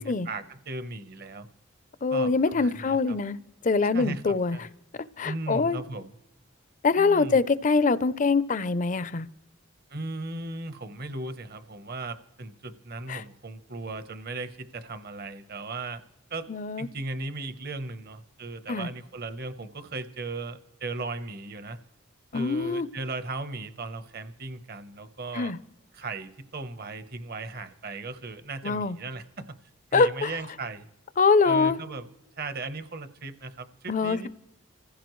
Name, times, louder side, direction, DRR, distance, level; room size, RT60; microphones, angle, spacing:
voice 1, 0.0-1.5 2.1-3.2 3.8-4.7 5.2-6.1 7.0-7.4 9.9-16.0 16.3-16.5 16.8-21.8 22.3-25.5 25.9-29.6 29.9-30.9 31.4-32.1 32.4-34.3, right 3 dB, 50° right, 10 dB, 0.9 m, -37 dB
voice 2, 2.0-3.4 3.6-4.6 5.2-5.8 6.8-9.3 13.1-13.2 16.5-16.9 18.7-18.9 22.3-22.9 25.3-25.6 28.6-29.0 29.9-30.3 31.2-31.8 33.9-34.3, left 4 dB, 40° left, 15 dB, 0.5 m, -24 dB
26.5 x 15.5 x 3.1 m, 0.91 s
head